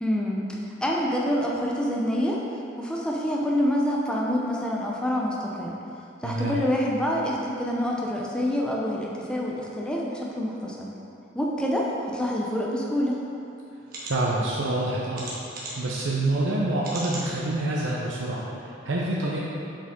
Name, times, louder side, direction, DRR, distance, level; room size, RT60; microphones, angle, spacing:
voice 1, 0.0-2.4 2.8-5.8 6.2-10.9 11.3-13.2, equal, 5° left, -3 dB, 0.6 m, -27 dB
voice 2, 6.2-6.6 14.0-19.4, right 2 dB, 85° right, -4 dB, 0.7 m, -27 dB
sound 1, 13.1-13.2 13.8-14.1 15.1-15.9 16.8-17.3 17.8-17.9 18.3-18.4, right 2 dB, 50° right, 1.4 m, -37 dB
7.1 x 5.0 x 3.7 m, 2.8 s
head